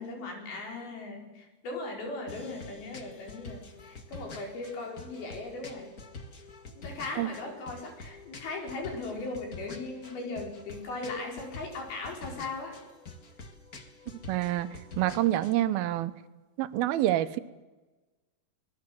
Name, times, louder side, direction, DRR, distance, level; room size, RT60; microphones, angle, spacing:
voice 1, 0.0-5.9 6.8-12.8, left 3 dB, 85° left, 1 dB, 6.4 m, -38 dB
sound 1, 2.3-15.6, left 3 dB, 35° left, 1.4 m, -47 dB
voice 2, 14.3-14.7 15.0-16.1 16.6-17.4, right 14 dB, 85° right, 13 dB, 2.8 m, -27 dB
24.5 x 20.5 x 7.6 m, 1.2 s
omnidirectional pair, 4.3 m